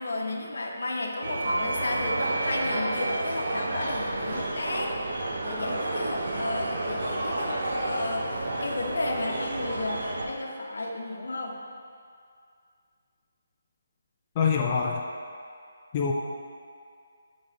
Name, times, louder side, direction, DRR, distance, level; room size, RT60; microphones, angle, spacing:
voice 1, 0.0-4.9 5.4-11.6, left 2 dB, 75° left, 1 dB, 0.9 m, -33 dB
sound 1, 1.2-10.3, right 2 dB, 60° right, 0.8 m, -30 dB
voice 2, 14.4-15.0 15.9-16.1, left 6 dB, 20° left, -1 dB, 0.4 m, -24 dB
8.0 x 3.9 x 3.9 m, 2.3 s
hypercardioid pair, 170°, 0 cm